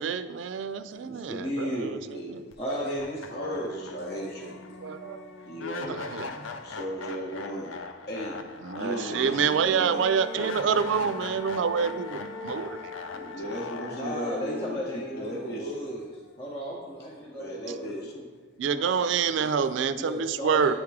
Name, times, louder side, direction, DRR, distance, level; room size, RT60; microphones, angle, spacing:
voice 1, 0.0-2.4 4.8-5.3 5.9-6.6 8.6-12.9 18.6-20.7, right 6 dB, 75° right, 12 dB, 0.4 m, -27 dB
voice 2, 1.0-2.1 2.6-3.8 13.9-16.1 16.4-18.3 19.9-20.7, equal, 30° left, -4 dB, 0.7 m, -34 dB
voice 3, 2.0-2.9 3.3-4.6 5.5-6.0 6.6-7.7 8.1-8.4 8.8-10.0 13.1-15.7 17.3-18.1, equal, 55° left, -1 dB, 1.0 m, -36 dB
sound 1, 2.5-2.6 3.0-16.0, left 4 dB, 85° left, 0.5 m, -40 dB
9.0 x 3.6 x 4.7 m, 1.4 s
head